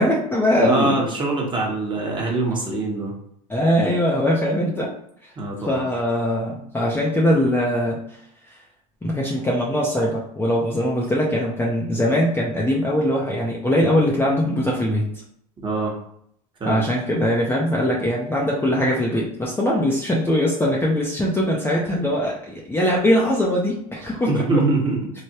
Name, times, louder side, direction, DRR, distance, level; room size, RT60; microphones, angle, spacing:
voice 1, 0.0-1.1 3.5-4.9 5.7-8.0 8.5-8.6 9.0-15.1 16.7-24.5, equal, 10° left, -4 dB, 0.6 m, -21 dB
voice 2, 0.6-3.1 5.4-5.9 15.6-15.9 16.6-16.8 24.3-25.1, right 3 dB, 25° right, -1 dB, 1.1 m, -23 dB
3.2 x 2.1 x 2.8 m, 0.70 s
supercardioid pair, 100°, 19 cm